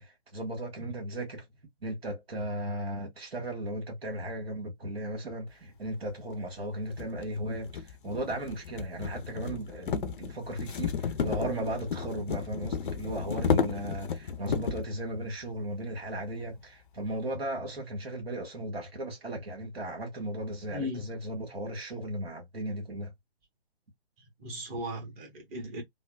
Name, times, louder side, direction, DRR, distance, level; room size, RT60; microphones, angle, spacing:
voice 1, 0.0-1.4 1.8-23.1, right 1 dB, 70° right, 1.6 m, -36 dB
sound 1, 6.1-6.2 6.9-14.9, left 6 dB, 55° left, 0.6 m, -33 dB
voice 2, 20.7-21.1 24.2-25.8, left 1 dB, 15° right, 0.9 m, -37 dB
3.3 x 2.0 x 2.2 m
figure-of-eight pair, 140°, 31 cm